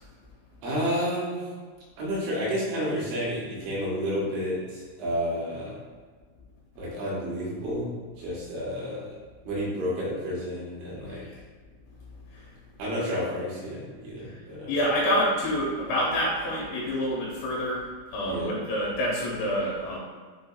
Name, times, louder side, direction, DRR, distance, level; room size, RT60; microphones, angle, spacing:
voice 1, 0.6-1.5 2.0-5.8 6.8-7.9 8.2-9.1 9.4-11.3 12.8-14.8 18.2-18.5, equal, 80° right, -6 dB, 3.2 m, -30 dB
voice 2, 14.7-20.0, equal, 75° left, -4 dB, 3.1 m, -27 dB
7.3 x 2.6 x 2.2 m, 1.5 s
omnidirectional pair, 5.5 m